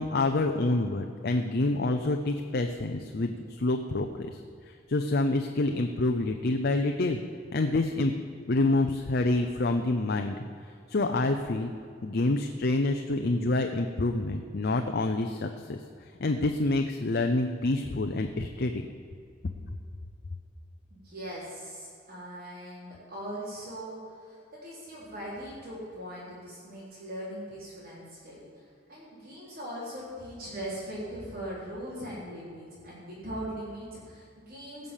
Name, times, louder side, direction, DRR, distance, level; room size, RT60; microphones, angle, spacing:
voice 1, 0.0-4.4 4.7-7.2 7.5-8.1 8.5-10.4 10.9-11.7 12.0-15.8 16.2-18.9, left 2 dB, 55° left, 5 dB, 0.7 m, -27 dB
voice 2, 20.9-34.9, equal, 50° right, -7 dB, 4.0 m, -40 dB
17.0 x 6.6 x 7.3 m, 2.4 s
head